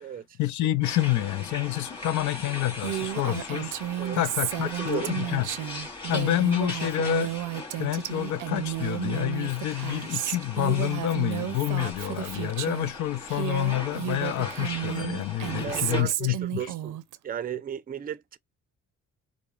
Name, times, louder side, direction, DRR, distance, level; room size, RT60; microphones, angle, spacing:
voice 1, 0.4-3.8 4.1-5.5 6.1-7.3 7.8-16.7, left 13 dB, 70° left, 0.5 m, -28 dB
sound 1, 0.8-16.0, left 2 dB, 15° left, 2.1 m, -39 dB
Female speech woman speaking, 2.8-12.9 13.3-17.2, right 14 dB, 80° right, 0.5 m, -32 dB
voice 2, 4.8-5.1 15.6-17.0 17.2-18.4, right 9 dB, 30° right, 0.5 m, -34 dB
4.8 x 2.1 x 2.3 m
cardioid pair, 90°, 30 cm